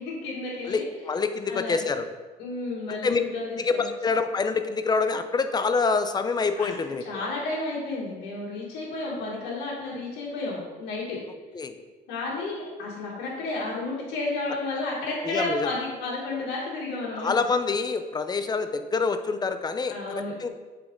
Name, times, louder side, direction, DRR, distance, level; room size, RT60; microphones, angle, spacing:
voice 1, 0.0-0.9 1.5-1.8 2.4-3.9 6.6-11.2 12.1-17.3 19.9-20.3, left 2 dB, 80° left, -5 dB, 1.8 m, -32 dB
voice 2, 0.7-2.1 2.9-3.2 3.6-7.0 11.5-11.8 15.2-15.7 17.2-19.9 20.4-20.5, left 4 dB, 25° left, 9 dB, 0.5 m, -26 dB
7.6 x 4.2 x 3.8 m, 1.3 s
cardioid pair, 110°, 17 cm